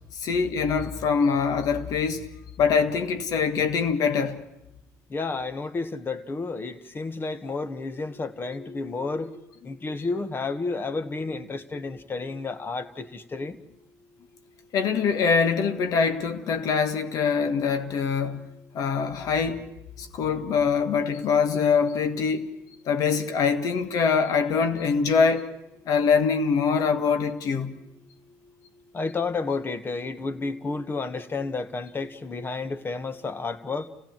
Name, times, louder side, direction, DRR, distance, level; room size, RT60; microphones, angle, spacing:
voice 1, 0.1-2.3 2.6-4.4 14.7-18.5 18.7-19.6 20.0-22.5 22.8-25.5 25.9-27.8, left 5 dB, 60° left, 1.6 m, -24 dB
voice 2, 5.1-13.6 28.9-33.9, left 3 dB, 30° left, 1.6 m, -31 dB
29.5 x 16.0 x 7.6 m
hypercardioid pair, 70°, 7 cm